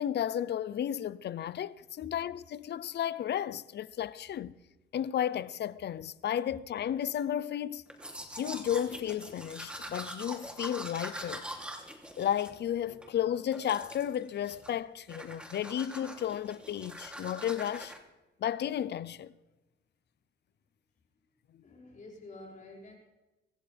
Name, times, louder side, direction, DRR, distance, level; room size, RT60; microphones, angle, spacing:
voice 1, 0.0-4.6 4.9-7.8 8.4-11.5 12.2-17.9 18.4-19.3 21.5-21.6, left 10 dB, 60° left, 0.7 m, -33 dB
Domestic sounds home sounds, 7.9-13.1 13.5-14.2 14.4-14.8 15.1-18.0, equal, 5° right, 3.1 m, -44 dB
voice 2, 21.6-22.9, left 2 dB, 40° left, 5.9 m, -49 dB
25.5 x 14.5 x 3.5 m
cardioid pair, 90°, 20 cm